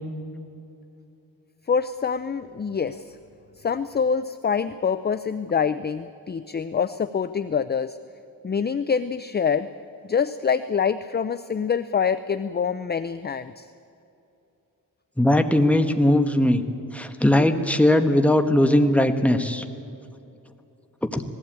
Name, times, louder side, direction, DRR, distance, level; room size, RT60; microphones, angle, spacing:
voice 1, 1.7-3.1 3.6-8.0 8.4-9.7 10.1-13.7, left 6 dB, 30° left, 12 dB, 0.5 m, -25 dB
voice 2, 15.2-16.6 16.9-19.6 21.0-21.2, left 1 dB, 5° left, 6 dB, 1.3 m, -19 dB
19.5 x 15.5 x 8.8 m, 2.8 s
cardioid pair, 95°, 34 cm